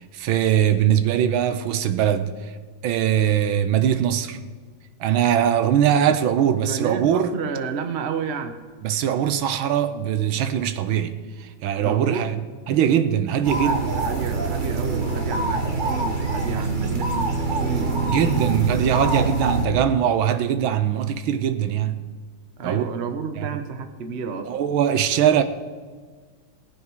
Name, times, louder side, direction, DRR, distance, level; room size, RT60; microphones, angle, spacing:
voice 1, 0.1-2.5 2.8-4.4 5.0-7.3 8.8-12.3 12.7-13.9 18.1-22.0 22.6-22.9 23.4-23.5 24.5-25.4, right 9 dB, 80° right, 1.6 m, -21 dB
voice 2, 6.4-8.6 11.8-12.3 13.6-17.9 19.5-19.6 22.6-24.5, right 5 dB, 45° right, 0.9 m, -31 dB
sound 1, 13.4-19.6, right 3 dB, 30° right, 1.1 m, -24 dB
18.5 x 8.5 x 4.6 m
omnidirectional pair, 2.3 m